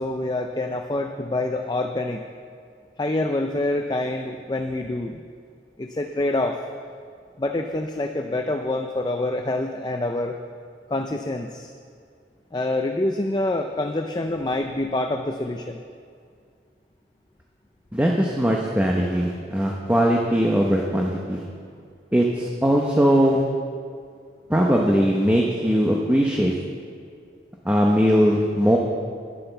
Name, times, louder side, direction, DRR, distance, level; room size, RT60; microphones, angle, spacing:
voice 1, 0.0-2.2 3.0-5.2 5.8-6.6 7.4-10.4 10.9-11.7 12.5-15.8, left 2 dB, 25° left, 5 dB, 0.5 m, -26 dB
voice 2, 17.9-21.4 22.1-23.4 24.5-26.5 27.6-28.8, equal, 10° right, -1 dB, 0.8 m, -20 dB
10.0 x 10.0 x 6.8 m, 2.2 s
head